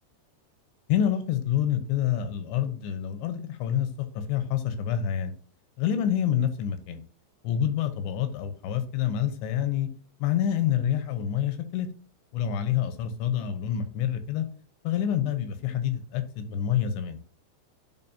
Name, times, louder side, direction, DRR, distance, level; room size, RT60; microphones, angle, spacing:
voice 1, 0.9-3.9 4.1-5.3 5.8-7.0 7.4-9.9 10.2-11.9 12.3-14.5 14.8-17.2, left 10 dB, 80° left, 3.1 m, -27 dB
11.0 x 5.0 x 2.7 m
omnidirectional pair, 5.1 m